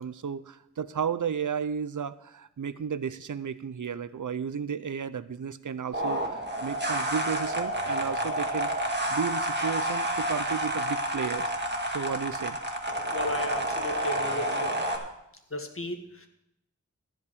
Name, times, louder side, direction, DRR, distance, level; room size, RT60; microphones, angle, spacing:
voice 1, 0.0-11.5 11.9-12.6, right 7 dB, 85° right, 14 dB, 0.6 m, -33 dB
sound 1, 5.9-15.0, right 1 dB, 35° right, 1.8 m, -29 dB
voice 2, 13.1-14.8 15.5-16.3, left 1 dB, 45° left, 5 dB, 1.6 m, -34 dB
15.0 x 5.2 x 8.3 m, 0.82 s
wide cardioid pair, 60°, 30 cm